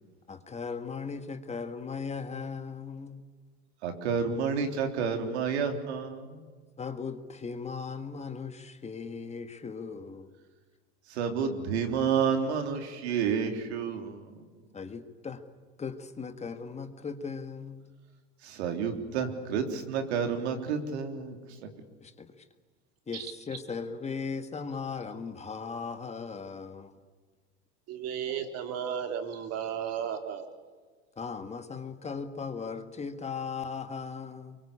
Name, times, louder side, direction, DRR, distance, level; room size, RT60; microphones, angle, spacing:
voice 1, 0.3-3.2 6.8-10.3 14.7-15.4 15.8-17.9 22.0-22.4 23.1-26.9 31.2-34.6, left 5 dB, 20° left, 1.7 m, -38 dB
voice 2, 3.8-6.5 11.1-14.4 18.4-21.7, right 6 dB, 85° right, 3.6 m, -30 dB
voice 3, 27.9-30.5, right 8 dB, 50° right, 3.8 m, -34 dB
24.0 x 23.5 x 8.6 m
supercardioid pair, 115°, 32 cm